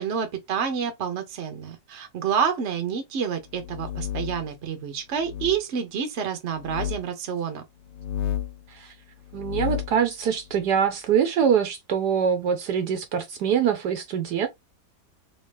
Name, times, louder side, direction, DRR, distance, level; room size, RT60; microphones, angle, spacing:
voice 1, 0.0-7.6, right 7 dB, 45° right, 1.0 m, -28 dB
sound 1, 3.5-4.5 5.2-5.6 6.6-7.0 7.9-8.6 9.3-10.0, left 10 dB, 75° left, 1.2 m, -31 dB
voice 2, 9.3-14.5, right 7 dB, 70° right, 1.2 m, -24 dB
3.2 x 2.8 x 3.4 m
omnidirectional pair, 1.9 m